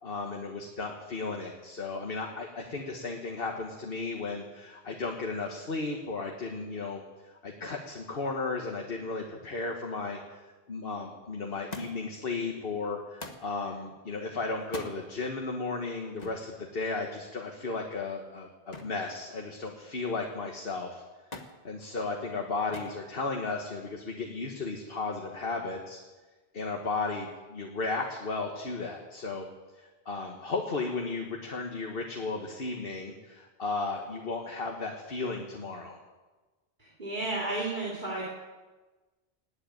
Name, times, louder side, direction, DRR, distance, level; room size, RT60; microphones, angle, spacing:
voice 1, 0.0-21.0 21.6-26.0 26.5-29.4 29.7-36.0, left 3 dB, 65° left, 2 dB, 1.6 m, -35 dB
Thump thud, 11.7-12.2 13.2-13.5 14.6-15.0 16.2-16.5 18.7-19.0 19.4-20.0 21.3-21.6 22.7-23.0 23.9-24.4 25.4-25.5, left 2 dB, 40° left, 1.5 m, -42 dB
voice 2, 36.8-38.2, right 2 dB, 50° right, -4 dB, 3.1 m, -32 dB
18.5 x 8.0 x 9.4 m, 1.2 s
omnidirectional pair, 1.0 m